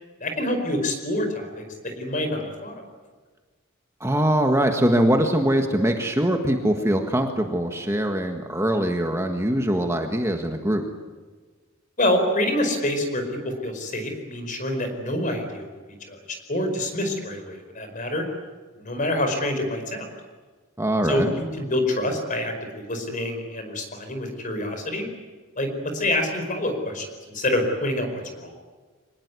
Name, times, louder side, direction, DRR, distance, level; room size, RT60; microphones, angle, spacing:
voice 1, 0.2-2.8 12.0-15.7 16.1-16.2 16.5-18.2 18.8-20.1 21.0-25.0 25.6-28.5, left 1 dB, 40° left, 6 dB, 4.9 m, -26 dB
voice 2, 4.0-10.8 20.8-21.3, right 1 dB, 15° right, 4 dB, 1.6 m, -22 dB
25.5 x 19.5 x 9.7 m, 1.4 s
head